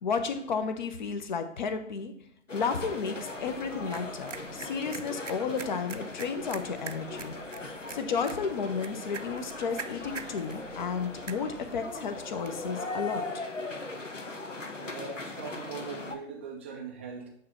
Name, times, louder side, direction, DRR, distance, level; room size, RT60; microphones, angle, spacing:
voice 1, 0.0-2.1 2.5-7.3 7.9-13.4, left 5 dB, 40° left, 9 dB, 0.9 m, -32 dB
sound 1, 2.5-16.1, left 2 dB, 85° left, 1.1 m, -39 dB
sound 2, 3.2-12.7, right 5 dB, 85° right, 0.7 m, -46 dB
voice 2, 14.8-17.3, right 5 dB, 10° right, 0 dB, 0.4 m, -41 dB
8.6 x 3.4 x 5.6 m, 0.68 s
figure-of-eight pair, 125°, 36 cm